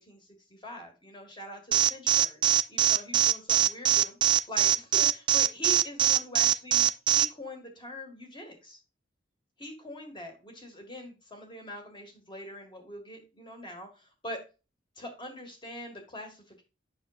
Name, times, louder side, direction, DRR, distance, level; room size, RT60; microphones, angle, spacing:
voice 1, 0.0-6.9 7.1-8.8 9.6-14.4 15.0-16.6, left 1 dB, 25° left, 3 dB, 1.8 m, -43 dB
Alarm, 1.7-7.3, right 10 dB, 25° right, 0.3 m, -22 dB
7.9 x 6.2 x 2.4 m, 0.30 s
head